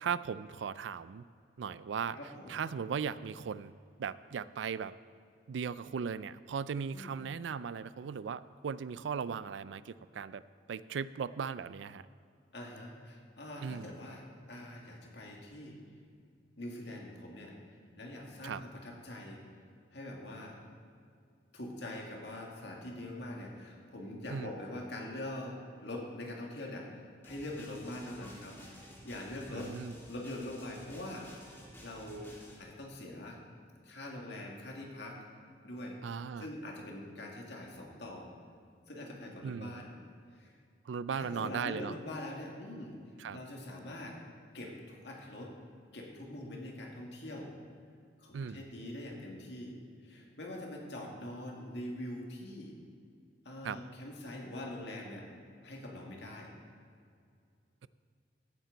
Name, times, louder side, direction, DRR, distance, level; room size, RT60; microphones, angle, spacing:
voice 1, 0.0-1.2 1.6-2.2 2.5-3.7 4.0-4.9 5.5-10.4 10.7-12.0 13.6-13.9 18.4-18.6 24.3-24.5 29.5-29.9 36.0-36.5 39.4-39.8 40.9-41.9 43.2-43.4 48.3-48.6 53.6-53.8, right 6 dB, 85° right, 16 dB, 0.4 m, -37 dB
voice 2, 2.1-2.5 6.9-7.2 12.5-15.8 16.6-19.4 19.9-20.6 21.5-29.7 30.1-31.3 31.8-32.3 32.6-33.4 33.8-35.2 35.6-38.3 38.9-39.9 40.3-40.5 41.1-42.9 43.3-44.1 44.5-45.5 45.9-47.5 48.2-49.8 50.0-52.7 53.5-55.2 55.6-56.5, left 1 dB, 70° left, -1 dB, 2.1 m, -43 dB
sound 1, 27.2-32.6, left 1 dB, 15° left, 2.1 m, -53 dB
15.5 x 8.8 x 4.0 m, 2.3 s
head